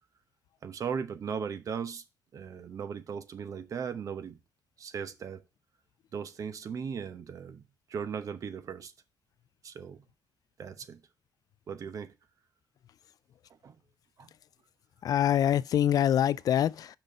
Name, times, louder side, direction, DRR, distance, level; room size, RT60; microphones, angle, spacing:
voice 1, 0.6-2.0 2.3-4.4 4.8-5.4 6.1-7.6 7.9-8.9 9.6-10.0 10.6-11.0 11.7-12.1 13.6-13.7 14.2-14.3, right 6 dB, 55° right, 0.9 m, -37 dB
voice 2, 15.0-17.0, left 10 dB, 70° left, 0.3 m, -25 dB
6.1 x 5.2 x 5.3 m
cardioid pair, 125°, 7 cm